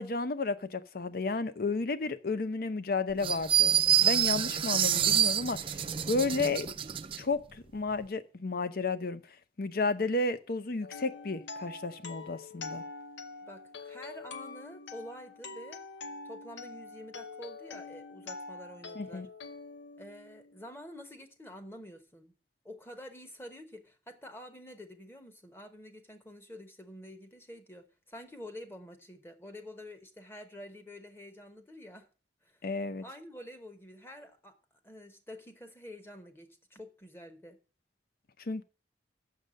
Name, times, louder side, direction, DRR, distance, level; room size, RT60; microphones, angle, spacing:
voice 1, 0.0-3.7 4.0-6.7 7.2-9.2 9.6-12.8 19.0-19.3 32.6-33.0 38.4-38.6, left 3 dB, 55° left, 0.6 m, -32 dB
sound 1, 3.2-7.2, right 10 dB, 30° right, 0.4 m, -27 dB
sound 2, 10.8-20.7, left 4 dB, 85° left, 0.9 m, -45 dB
voice 2, 13.4-15.8 16.2-19.3 20.0-22.3 22.6-32.1 32.4-32.6 33.0-34.6 34.8-37.6, left 1 dB, 15° left, 1.0 m, -48 dB
6.6 x 6.6 x 7.5 m
head